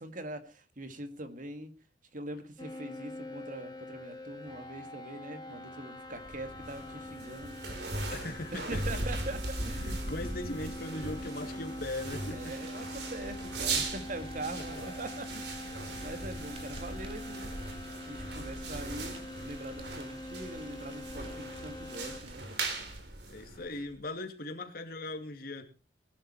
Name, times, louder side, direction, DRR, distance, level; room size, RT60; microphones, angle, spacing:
voice 1, 0.0-1.7 2.1-7.6 8.5-10.2 12.2-17.5 18.1-22.6, right 2 dB, 50° right, 9 dB, 1.9 m, -43 dB
sound 1, 2.6-22.2, left 1 dB, 25° left, 2.3 m, -44 dB
sound 2, 6.1-24.0, right 2 dB, 70° right, 3.5 m, -39 dB
voice 2, 8.1-8.8 9.8-12.5 23.3-25.6, left 2 dB, 55° left, 6 dB, 2.5 m, -39 dB
sound 3, 12.4-23.0, right 3 dB, 35° right, 2.4 m, -56 dB
19.5 x 11.0 x 4.4 m, 0.33 s
head